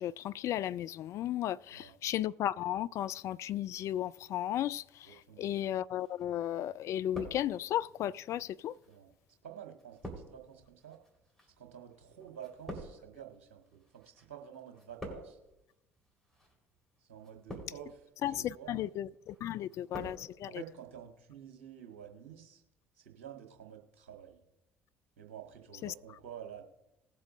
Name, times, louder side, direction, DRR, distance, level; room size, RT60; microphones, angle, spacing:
voice 1, 0.0-8.7 18.2-20.6 25.8-25.9, left 12 dB, 45° left, 0.4 m, -35 dB
voice 2, 5.0-5.5 8.9-9.1 9.4-11.0 11.6-15.4 17.0-18.8 20.5-22.6 22.9-24.4 25.2-26.6, right 9 dB, 70° right, 1.6 m, -50 dB
sound 1, 6.0-6.6 6.9-7.9 8.6-14.3 14.5-15.5 16.2-16.5 17.2-18.0 18.5-18.9 19.3-20.2 20.5-20.6, equal, 5° left, 3.9 m, -47 dB
19.5 x 7.6 x 2.5 m
figure-of-eight pair, 55°, 7 cm